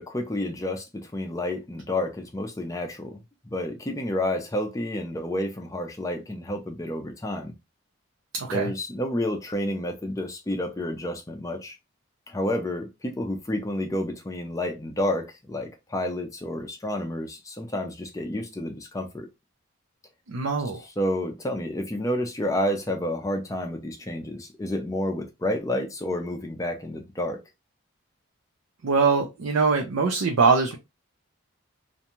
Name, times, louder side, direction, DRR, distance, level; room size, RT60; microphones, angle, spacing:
voice 1, 0.0-7.5 8.5-11.8 12.3-19.3 21.0-27.4, left 1 dB, 15° left, 0.5 m, -30 dB
voice 2, 8.4-8.7 20.3-20.8 28.8-30.8, right 4 dB, 70° right, 0.5 m, -22 dB
2.6 x 2.2 x 2.9 m
head